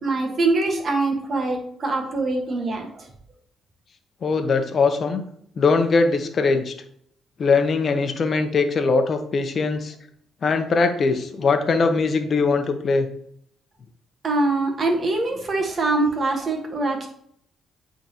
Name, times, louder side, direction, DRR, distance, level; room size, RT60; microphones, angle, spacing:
voice 1, 0.0-3.1 14.2-17.1, right 2 dB, 40° right, 2 dB, 1.5 m, -23 dB
voice 2, 4.2-5.2 5.6-6.7 7.4-9.9 10.4-13.1, left 4 dB, 50° left, 7 dB, 0.9 m, -21 dB
8.4 x 3.8 x 3.0 m, 0.67 s
cardioid pair, 90°, 0 cm